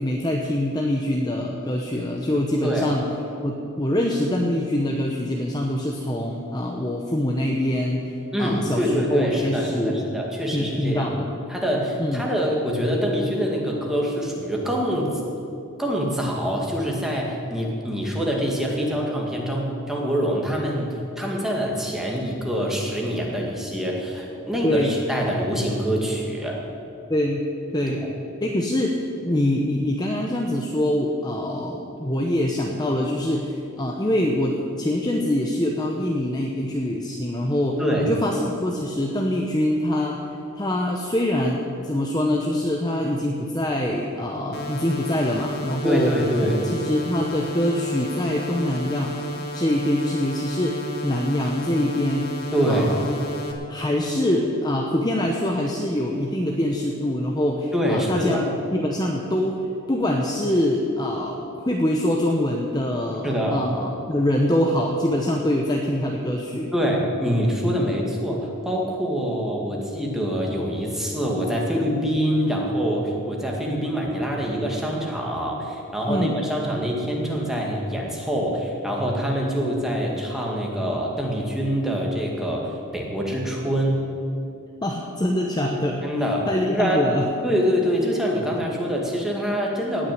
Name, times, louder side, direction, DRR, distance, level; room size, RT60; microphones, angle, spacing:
voice 1, 0.0-3.0 3.4-10.1 10.5-11.4 12.0-12.3 24.6-24.9 27.1-27.4 27.7-28.0 28.4-40.2 40.6-46.1 46.6-49.2 49.5-52.3 52.7-53.1 53.7-61.4 61.6-66.7 76.1-76.4 84.8-86.0 86.5-87.2, left 1 dB, 20° left, 0 dB, 0.8 m, -24 dB
voice 2, 8.3-11.1 11.5-15.1 15.8-26.6 27.9-28.0 37.8-38.1 45.8-46.6 52.5-52.9 57.7-58.5 63.2-63.7 66.7-84.0 86.0-86.5 86.7-87.0 87.4-90.1, equal, ahead, -2 dB, 2.0 m, -25 dB
sound 1, 44.5-53.5, equal, 45° left, 1.6 m, -33 dB
18.0 x 6.3 x 9.3 m, 2.7 s
head